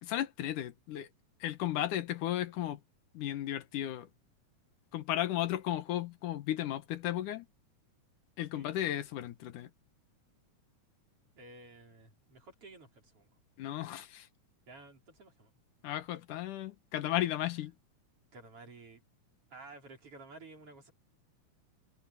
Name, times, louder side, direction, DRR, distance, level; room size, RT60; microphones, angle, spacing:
voice 1, 0.0-1.1 1.4-2.8 3.1-4.1 4.9-7.5 8.4-9.7 13.6-14.3 15.8-17.7, left 13 dB, 85° left, 2.8 m, -34 dB
voice 2, 11.4-13.3 14.7-15.5 17.4-17.6 18.3-19.0 19.5-20.9, right 3 dB, 45° right, 5.2 m, -53 dB
omnidirectional pair, 3.5 m